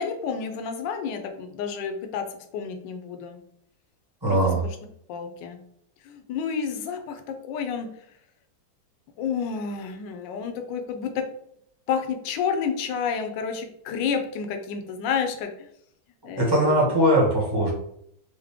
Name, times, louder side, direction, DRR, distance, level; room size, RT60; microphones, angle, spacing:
voice 1, 0.0-2.2 2.5-3.4 4.3-4.4 5.1-5.6 6.0-7.9 9.2-11.2 11.9-15.7 16.2-16.8, left 6 dB, 75° left, 5 dB, 1.2 m, -30 dB
voice 2, 4.2-4.6 16.4-17.7, right 1 dB, 15° right, -4 dB, 0.9 m, -20 dB
4.7 x 2.1 x 3.4 m, 0.72 s
omnidirectional pair, 2.1 m